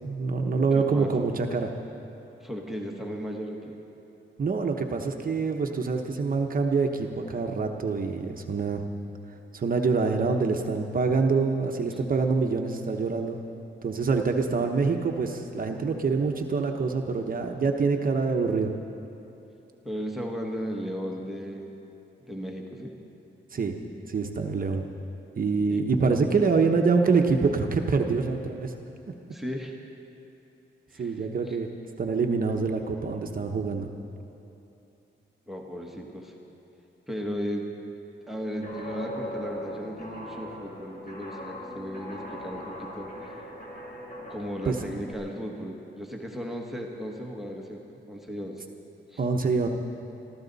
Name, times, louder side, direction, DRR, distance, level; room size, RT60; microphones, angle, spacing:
voice 1, 0.0-1.7 4.4-8.8 9.5-13.4 13.8-18.7 23.5-23.8 24.1-24.8 25.4-28.7 31.0-31.7 32.0-33.9 44.7-44.8 49.2-49.7, right 4 dB, 45° right, 3 dB, 1.0 m, -25 dB
voice 2, 0.7-1.3 2.4-3.8 11.9-12.0 19.8-21.7 22.3-22.9 25.7-25.8 29.3-29.7 30.9-31.6 35.5-36.3 37.1-37.7 38.3-43.4 44.3-48.6 49.1-49.2, equal, ahead, 0 dB, 1.4 m, -36 dB
Guitar, 38.6-45.1, left 1 dB, 45° left, 3.0 m, -39 dB
23.0 x 14.0 x 4.1 m, 2.9 s
cardioid pair, 110°, 20 cm